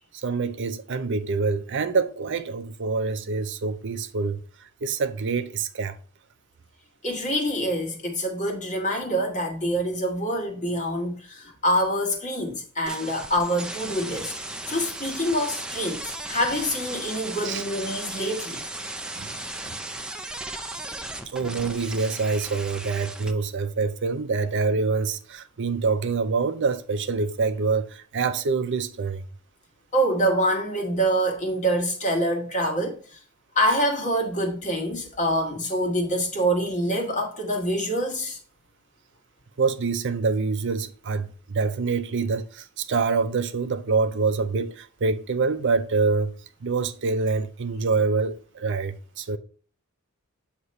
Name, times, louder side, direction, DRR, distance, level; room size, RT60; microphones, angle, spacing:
voice 1, 0.1-6.0 17.4-17.6 19.2-19.4 19.7-19.8 21.3-29.2 39.6-46.3 46.6-49.4, right 4 dB, 55° right, 0.5 m, -26 dB
voice 2, 7.0-14.3 14.7-18.6 29.9-33.2 33.5-38.4, equal, 35° left, 1.6 m, -26 dB
sound 1, 12.9-23.3, right 2 dB, 5° right, 0.4 m, -36 dB
8.1 x 2.9 x 5.3 m
head